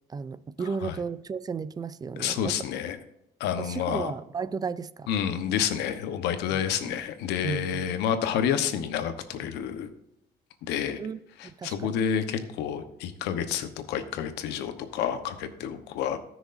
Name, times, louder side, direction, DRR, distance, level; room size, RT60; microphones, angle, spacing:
voice 1, 0.1-2.6 3.6-5.1 6.5-6.6 7.4-7.9 11.0-12.0, right 5 dB, 25° right, 17 dB, 0.4 m, -34 dB
voice 2, 0.6-1.0 2.2-3.0 3.4-4.1 5.1-9.9 10.6-11.0 11.4-16.2, left 8 dB, 85° left, 9 dB, 1.1 m, -29 dB
18.5 x 6.3 x 2.6 m, 0.80 s
cardioid pair, 110°, 17 cm